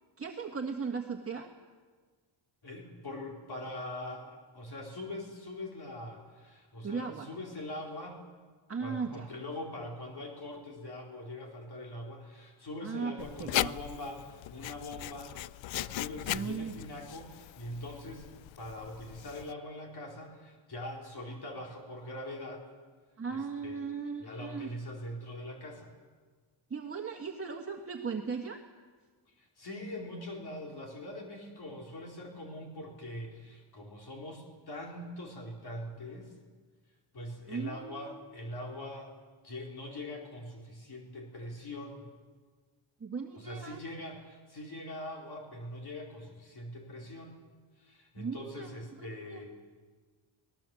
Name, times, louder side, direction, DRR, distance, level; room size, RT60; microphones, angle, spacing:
voice 1, 0.2-1.5 6.8-7.3 8.7-9.3 12.8-13.7 16.2-16.7 23.2-24.7 26.7-28.6 37.5-38.2 43.0-43.8 48.2-48.7 49.0-49.4, right 5 dB, 30° right, 2 dB, 1.7 m, -37 dB
voice 2, 2.6-8.3 8.8-15.3 15.7-18.3 18.6-22.7 23.3-23.9 24.2-25.9 29.3-36.3 37.1-39.2 39.4-42.1 43.4-47.4 47.8-49.5, left 1 dB, 55° left, 0 dB, 4.3 m, -42 dB
Writing, 13.2-19.5, left 14 dB, 70° left, 0.6 m, -38 dB
25.0 x 19.0 x 7.8 m, 1.5 s
cardioid pair, 115°, 47 cm